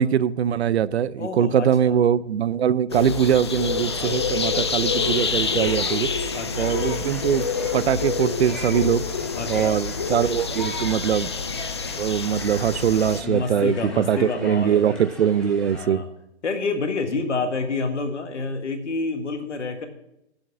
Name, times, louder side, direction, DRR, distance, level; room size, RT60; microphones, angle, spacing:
voice 1, 0.0-6.1 6.6-7.4 7.7-9.0 9.5-11.3 12.0-16.0, right 9 dB, 65° right, 18 dB, 0.5 m, -22 dB
voice 2, 1.2-2.0 4.0-4.9 6.3-6.8 9.3-9.8 13.2-15.0 15.7-16.1 16.4-19.9, left 3 dB, 80° left, 5 dB, 1.9 m, -29 dB
sound 1, 2.9-13.2, left 5 dB, 25° left, 0.4 m, -27 dB
sound 2, 3.5-15.9, left 1 dB, ahead, 0.9 m, -41 dB
8.3 x 7.7 x 7.2 m, 0.83 s
hypercardioid pair, 150°, 35 cm